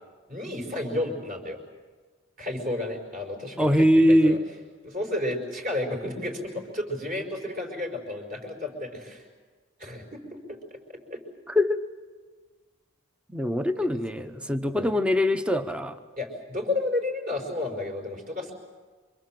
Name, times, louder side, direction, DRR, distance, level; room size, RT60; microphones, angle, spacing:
voice 1, 0.3-1.6 2.4-4.4 4.8-9.3 9.8-10.2 10.5-10.6 11.1-11.2 14.7-15.0 16.2-18.5, left 2 dB, 40° right, 2 dB, 5.3 m, -32 dB
voice 2, 3.6-4.4 11.5-11.8 13.3-16.0, equal, 5° right, 9 dB, 1.0 m, -22 dB
27.5 x 25.0 x 7.7 m, 1.4 s
head